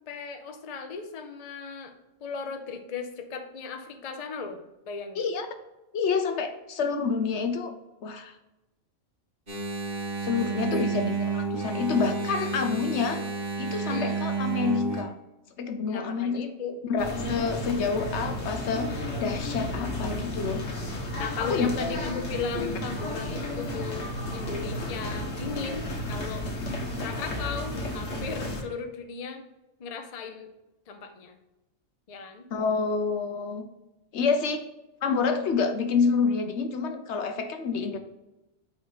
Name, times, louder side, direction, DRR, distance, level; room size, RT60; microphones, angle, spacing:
voice 1, 0.0-1.9 2.2-4.6 4.9-5.3 10.7-10.9 13.9-14.2 15.9-16.8 21.2-26.5 27.0-29.4 29.8-30.5 30.9-31.4 32.1-32.5, left 5 dB, 40° left, 6 dB, 0.6 m, -36 dB
voice 2, 5.9-7.7 8.0-8.3 10.2-13.2 13.6-15.1 15.6-16.4 16.8-20.6 21.4-21.8 26.6-26.7 32.5-33.7 34.1-34.7 35.0-38.0, left 5 dB, 65° left, 7 dB, 0.9 m, -28 dB
Engine, 9.5-15.0, right 4 dB, 35° right, 1.6 m, -30 dB
sound 1, 17.0-28.6, left 1 dB, 85° left, 1.4 m, -33 dB
8.3 x 3.3 x 4.0 m, 0.98 s
omnidirectional pair, 1.3 m